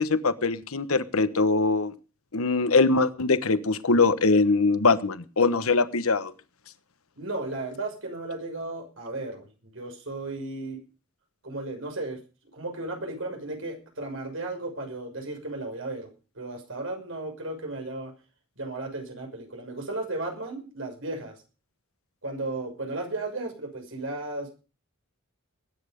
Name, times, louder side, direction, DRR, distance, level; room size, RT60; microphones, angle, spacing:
voice 1, 0.0-1.9 2.3-6.3, left 3 dB, 85° left, 13 dB, 1.2 m, -22 dB
voice 2, 7.2-10.8 11.4-12.2 12.5-16.1 16.3-18.1 18.6-21.4 22.2-24.5, right 2 dB, 65° right, 4 dB, 6.3 m, -34 dB
20.5 x 10.0 x 5.3 m, 0.35 s
head